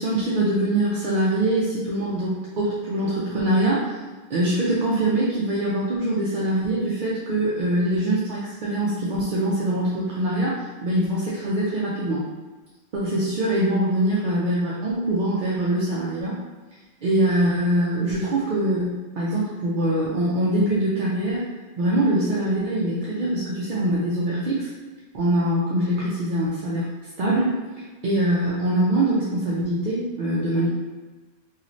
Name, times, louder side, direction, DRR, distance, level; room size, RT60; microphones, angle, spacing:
voice 1, 0.0-4.0 4.3-12.2 12.9-16.4 17.0-21.5 21.8-24.7 25.1-26.9 27.2-27.6 28.0-30.7, right 1 dB, 55° right, -7 dB, 0.6 m, -23 dB
3.0 x 2.4 x 2.5 m, 1.3 s
omnidirectional pair, 1.1 m